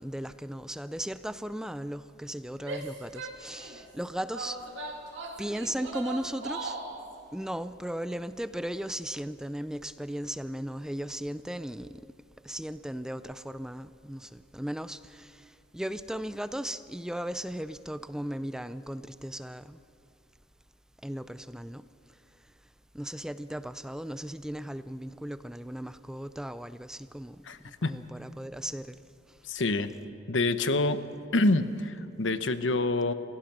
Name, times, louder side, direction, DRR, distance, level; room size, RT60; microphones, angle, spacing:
voice 1, 0.0-4.6 5.4-6.8 7.3-12.0 12.4-19.8 21.0-21.9 22.9-27.4 27.8-29.0, equal, 5° right, 0.4 m, -36 dB
Female speech woman speaking / Yell, 2.6-3.8 4.3-7.0, right 3 dB, 65° right, 2.5 m, -38 dB
voice 2, 27.4-27.9 29.4-29.9 30.3-31.0 31.3-33.1, left 2 dB, 75° left, 0.9 m, -26 dB
28.0 x 16.0 x 6.1 m
head